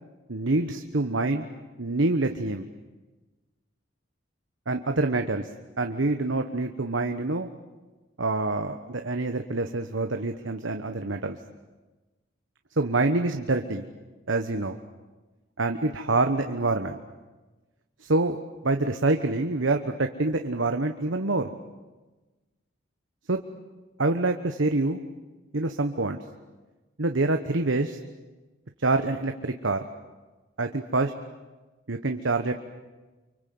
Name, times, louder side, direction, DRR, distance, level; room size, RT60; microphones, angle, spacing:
voice 1, 0.3-1.5 1.8-2.7 4.7-5.5 5.8-7.5 8.2-11.4 12.8-13.9 14.3-14.8 15.6-17.0 18.0-18.4 18.6-21.5 23.3-23.4 24.0-25.0 25.5-26.2 27.0-28.0 28.8-29.9 30.6-31.1 31.9-32.5, right 2 dB, 75° right, 6 dB, 1.2 m, -26 dB
29.5 x 24.5 x 7.8 m, 1.2 s
head